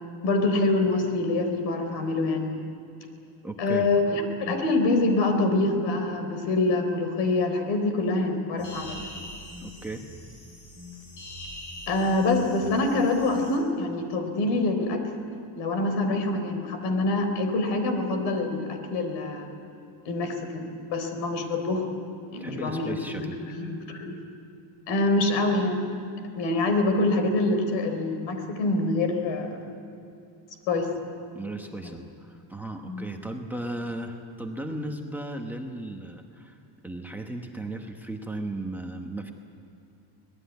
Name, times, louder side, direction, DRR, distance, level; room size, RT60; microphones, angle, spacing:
voice 1, 0.2-2.5 3.6-9.1 11.9-15.0 15.6-19.5 20.1-21.9 22.3-24.2 24.9-25.9 26.4-29.6 30.7-30.9 31.8-31.9 32.8-33.1, left 2 dB, 70° left, 6 dB, 4.0 m, -25 dB
voice 2, 3.4-3.9 9.6-10.0 22.4-23.4 31.3-36.6 36.8-39.3, right 1 dB, 5° right, 3 dB, 1.1 m, -36 dB
sound 1, 8.6-13.6, left 1 dB, 40° left, 6.6 m, -43 dB
25.0 x 19.0 x 9.4 m, 2.6 s
cardioid pair, 175°, 45 cm